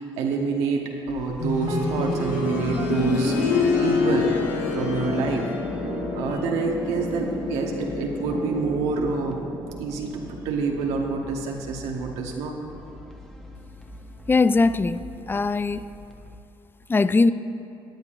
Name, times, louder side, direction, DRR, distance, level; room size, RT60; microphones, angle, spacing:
voice 1, 0.0-3.4 3.8-4.4 4.7-5.5 6.1-9.4 9.8-12.5, right 4 dB, 85° right, 1 dB, 1.1 m, -27 dB
sound 1, 1.1-16.4, equal, 5° left, 1.1 m, -44 dB
sound 2, 1.4-12.2 13.5-13.6, left 4 dB, 90° left, 1.0 m, -28 dB
sound 3, 1.7-11.4, right 8 dB, 45° right, 0.4 m, -38 dB
voice 2, 14.3-15.8 16.9-17.3, left 3 dB, 20° left, 14 dB, 0.4 m, -20 dB
16.5 x 9.4 x 2.5 m, 2.7 s
supercardioid pair, 60°, 11 cm